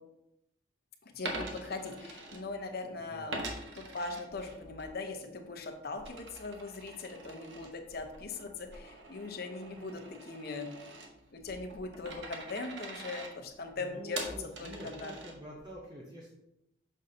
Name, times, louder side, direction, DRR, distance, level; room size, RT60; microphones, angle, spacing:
voice 1, 1.0-10.7 11.3-14.3 14.6-15.2, left 3 dB, 60° left, 4 dB, 0.8 m, -40 dB
Coin (dropping), 1.1-2.8 3.3-4.9 5.3-15.7, right 2 dB, 85° right, 1.0 m, -44 dB
voice 2, 13.8-16.4, equal, 25° right, -4 dB, 0.7 m, -47 dB
6.3 x 5.5 x 2.7 m, 0.87 s
head